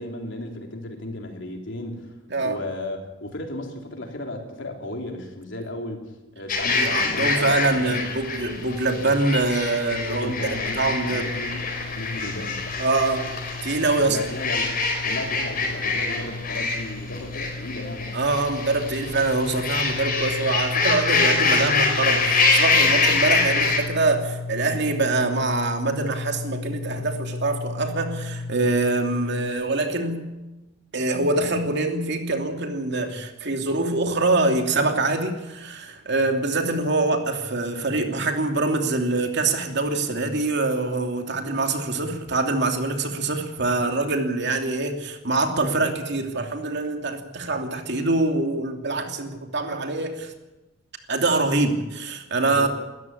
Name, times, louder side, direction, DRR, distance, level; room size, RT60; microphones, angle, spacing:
voice 1, 0.0-2.1 2.4-6.0 6.3-8.0 10.1-12.6 14.0-14.7 15.0-18.1 52.5-52.7, left 1 dB, 65° left, 2 dB, 3.8 m, -34 dB
sound 1, 6.5-23.8, left 3 dB, 45° left, 4.8 m, -25 dB
voice 2, 6.7-10.3 10.8-11.3 12.8-13.3 13.6-14.2 18.1-30.2 30.9-50.3 51.1-52.7, right 2 dB, 60° right, 4 dB, 2.8 m, -24 dB
sound 2, 9.9-29.5, left 3 dB, 90° left, 1.2 m, -35 dB
20.5 x 14.0 x 9.8 m, 1.1 s
head